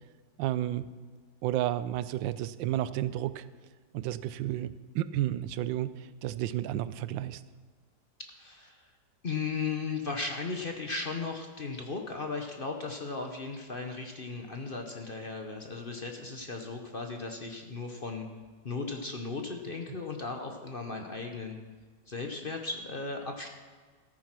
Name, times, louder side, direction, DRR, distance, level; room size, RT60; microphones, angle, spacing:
voice 1, 0.4-0.9 1.4-3.5 3.9-7.4, right 13 dB, 90° right, 15 dB, 1.3 m, -32 dB
voice 2, 8.3-8.9 9.2-18.3 18.6-21.6 22.1-23.5, left 4 dB, 40° left, 3 dB, 0.9 m, -36 dB
14.0 x 9.3 x 6.0 m, 1.5 s
omnidirectional pair, 2.0 m